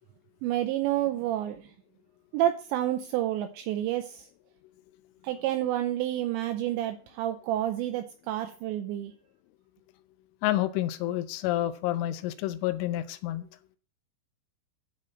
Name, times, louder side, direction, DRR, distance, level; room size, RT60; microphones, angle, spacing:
voice 1, 0.4-1.7 2.3-4.3 5.2-9.1, right 13 dB, 85° right, 7 dB, 2.6 m, -29 dB
voice 2, 10.4-13.5, left 14 dB, 80° left, 11 dB, 3.0 m, -29 dB
11.5 x 4.4 x 7.4 m, 0.40 s
omnidirectional pair, 5.8 m